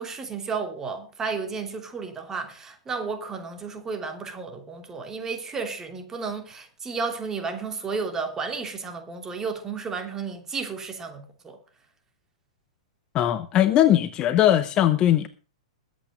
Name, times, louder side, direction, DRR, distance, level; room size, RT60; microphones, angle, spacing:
voice 1, 0.0-11.6, right 5 dB, 15° right, 2.9 m, -32 dB
voice 2, 13.1-15.3, left 12 dB, 25° left, 0.8 m, -20 dB
21.5 x 8.6 x 3.8 m
figure-of-eight pair, 105°, 3 cm